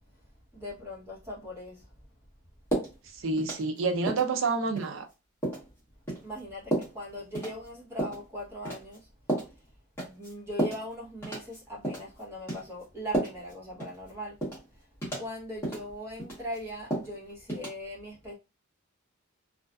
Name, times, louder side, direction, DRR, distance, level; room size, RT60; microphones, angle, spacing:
voice 1, 0.5-1.8 6.2-9.1 10.0-14.4 15.2-18.4, equal, 10° right, 0.8 m, -40 dB
sound 1, 2.7-2.9 3.4-3.8 4.1-4.3 4.8-4.9 5.4-5.7 6.1-6.2 6.7-6.9 7.3-7.5 8.0-8.2 8.6-9.0 9.3-9.5 10.0-10.3 10.6-10.8 11.2-11.6 11.8-12.1 12.5-12.6 13.1-13.5 13.8-13.9 14.4-14.6 15.0-15.3 15.6-15.8 16.2-16.6 16.9-17.1 17.5-17.7, right 1 dB, 10° left, 0.9 m, -31 dB
voice 2, 3.0-5.1, right 4 dB, 65° right, 0.5 m, -28 dB
2.4 x 2.3 x 2.2 m
head